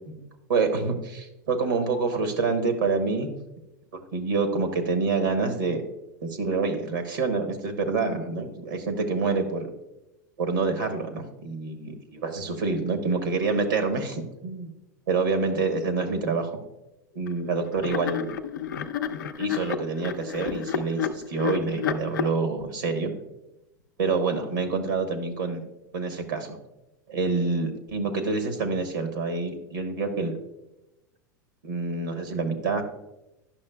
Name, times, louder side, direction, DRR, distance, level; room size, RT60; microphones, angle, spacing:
voice 1, 0.5-3.3 4.1-5.8 6.2-9.7 10.4-14.7 15.1-16.6 17.1-18.3 19.4-23.1 24.0-25.6 25.9-26.6 27.1-30.4 31.6-32.8, right 4 dB, 85° right, 7 dB, 0.9 m, -27 dB
sound 1, 17.2-17.4 17.8-22.3, left 7 dB, 85° left, 0.5 m, -30 dB
10.0 x 5.9 x 2.2 m, 0.94 s
hypercardioid pair, 95°, 10 cm